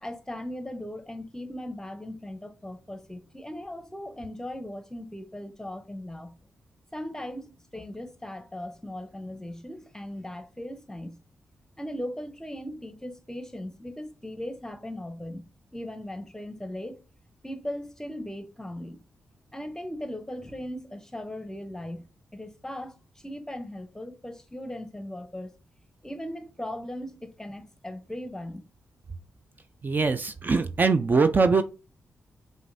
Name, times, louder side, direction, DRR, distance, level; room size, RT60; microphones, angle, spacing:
voice 1, 0.0-6.3 6.9-11.2 11.8-17.0 17.4-19.0 19.5-22.1 22.3-23.0 23.2-25.5 26.0-28.6, left 1 dB, 10° left, 0.8 m, -38 dB
voice 2, 29.8-31.6, right 4 dB, 40° right, 0.4 m, -22 dB
5.0 x 2.6 x 2.6 m
cardioid pair, 55°, 5 cm